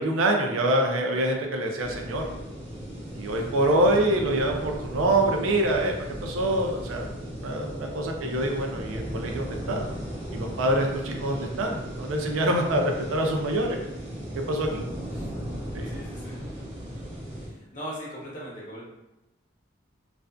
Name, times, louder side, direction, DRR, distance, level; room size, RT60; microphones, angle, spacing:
voice 1, 0.0-2.2 3.1-7.1 7.4-9.9 10.3-13.8 14.3-14.8 15.7-15.9, right 1 dB, 90° right, 2 dB, 0.4 m, -25 dB
sound 1, 1.8-17.5, equal, 25° right, 0.7 m, -36 dB
voice 2, 3.1-3.4 3.7-4.0 11.0-11.5 15.1-15.3 15.8-16.4 17.4-18.9, equal, 40° left, -6 dB, 0.7 m, -41 dB
2.4 x 2.4 x 2.2 m, 0.98 s
head